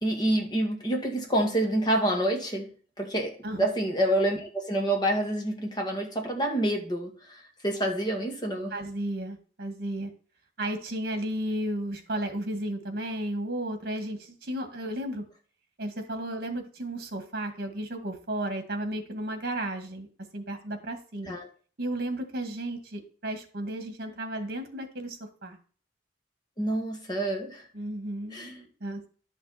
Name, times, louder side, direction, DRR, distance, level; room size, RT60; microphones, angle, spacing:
voice 1, 0.0-2.7 3.0-8.8 21.3-21.5 26.6-27.7 28.3-28.5, right 1 dB, 25° left, 1 dB, 2.1 m, -27 dB
voice 2, 8.7-10.1 10.6-15.2 15.8-20.1 20.3-21.3 21.8-25.6 27.7-29.1, right 1 dB, 55° right, 6 dB, 2.0 m, -33 dB
11.5 x 6.0 x 4.3 m, 0.41 s
head